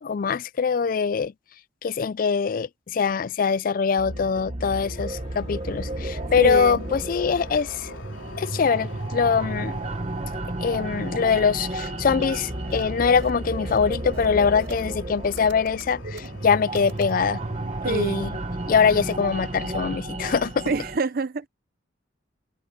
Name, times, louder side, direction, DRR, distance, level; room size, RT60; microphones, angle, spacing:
voice 1, 0.0-1.3 1.8-7.9 8.4-9.8 10.6-17.4 17.9-18.3 18.7-20.6, left 6 dB, 45° left, 0.4 m, -23 dB
sound 1, 4.0-21.0, right 2 dB, 35° right, 1.3 m, -32 dB
sound 2, 4.8-19.8, left 2 dB, 85° left, 3.4 m, -46 dB
voice 2, 6.4-6.8 17.8-18.2 20.7-21.5, right 3 dB, 50° right, 0.6 m, -26 dB
sound 3, 11.3-11.4 11.7-11.9 12.2-12.3 12.7-12.8 13.2-13.3 13.6-13.8 14.1-15.0 15.3-17.1, right 3 dB, 85° right, 3.8 m, -43 dB
head